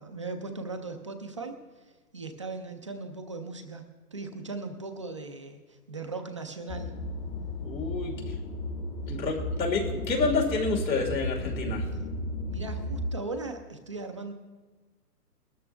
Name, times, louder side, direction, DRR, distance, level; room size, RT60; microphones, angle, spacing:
voice 1, 0.0-3.8 4.1-6.9 12.5-14.3, right 3 dB, 20° right, 5 dB, 0.4 m, -38 dB
sound 1, 6.7-13.1, left 1 dB, 20° left, 0.9 m, -34 dB
voice 2, 7.6-8.3 9.1-11.8, left 4 dB, 90° left, 1 dB, 3.1 m, -29 dB
20.0 x 13.0 x 3.3 m, 1.3 s
hypercardioid pair, 145°, 49 cm